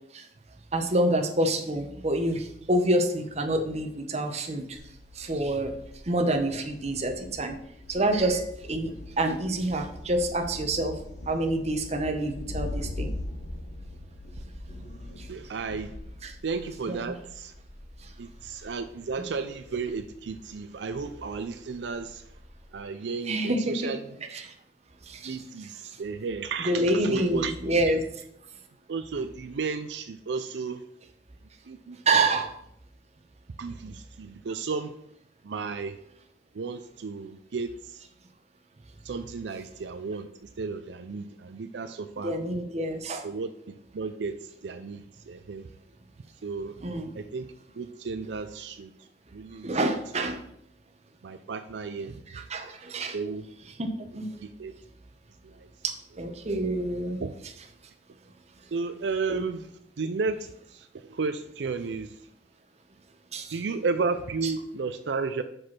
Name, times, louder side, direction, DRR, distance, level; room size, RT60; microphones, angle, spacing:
voice 1, 0.7-4.8 5.1-5.7 6.1-7.6 7.9-11.0 11.3-13.1 15.2-15.3 16.2-16.3 16.9-17.1 23.3-23.9 24.3-24.5 25.1-25.7 26.6-28.0 32.1-32.5 42.2-43.3 46.8-47.1 49.6-50.4 52.3-53.2 53.8-53.9 54.1-54.3 55.8-57.2 59.3-59.4 63.3-63.5 64.4-64.5, right 1 dB, 40° right, 6 dB, 0.9 m, -27 dB
Thunder, 4.8-22.8, left 1 dB, 65° left, 1.1 m, -42 dB
voice 2, 15.1-15.9 16.4-17.5 18.2-22.2 22.7-24.0 25.2-27.5 27.9-28.0 28.9-30.8 31.7-32.0 33.6-34.9 35.4-36.0 36.5-38.1 39.0-42.3 43.2-45.7 46.4-46.7 47.1-47.5 47.8-48.9 49.3-49.8 50.1-50.3 51.2-52.2 53.1-53.4 54.4-54.7 55.4-55.7 57.2-57.3 58.7-59.6 60.0-62.1 63.5-65.4, right 4 dB, 80° right, 10 dB, 0.5 m, -33 dB
6.2 x 5.2 x 5.8 m, 0.73 s
head